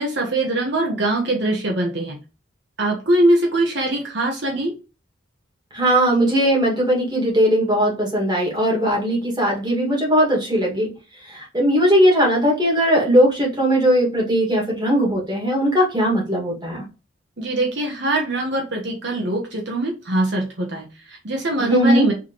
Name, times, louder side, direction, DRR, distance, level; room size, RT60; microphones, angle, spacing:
voice 1, 0.0-2.2 2.8-4.7 17.4-22.1, right 1 dB, 60° right, 0 dB, 1.1 m, -22 dB
voice 2, 5.7-10.9 11.2-16.9 21.6-22.1, equal, 20° right, -3 dB, 1.8 m, -19 dB
4.7 x 3.3 x 2.9 m, 0.32 s
head